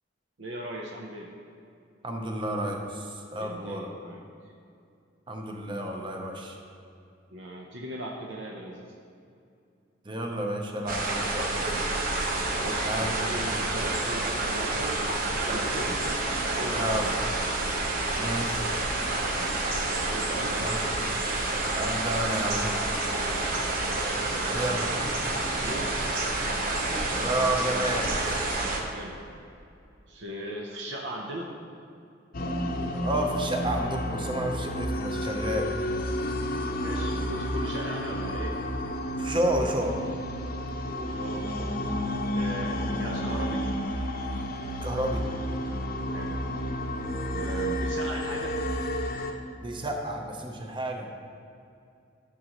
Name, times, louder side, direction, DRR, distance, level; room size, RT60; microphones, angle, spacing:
voice 1, 0.4-1.3 3.4-4.5 7.3-8.9 12.5-16.0 16.5-17.2 19.4-19.6 20.1-20.9 23.2-23.8 24.2-25.0 25.5-26.1 28.9-29.2 30.1-31.5 36.3-38.6 41.0-41.7 42.3-43.7 46.1-46.6 47.3-48.6, right 1 dB, 65° right, 0 dB, 0.8 m, -39 dB
voice 2, 2.0-3.9 5.3-6.6 10.0-11.7 12.8-13.1 15.7-16.0 16.7-17.1 18.2-18.7 20.5-20.8 21.8-22.7 24.5-25.9 26.8-28.4 32.4-35.7 39.2-40.0 40.7-41.2 44.8-45.2 49.6-51.1, right 1 dB, 25° right, 2 dB, 0.8 m, -31 dB
sound 1, 10.9-28.8, right 2 dB, 50° right, 1.1 m, -29 dB
sound 2, 32.3-49.3, equal, 50° left, 0.7 m, -31 dB
13.0 x 6.5 x 3.0 m, 2.5 s
head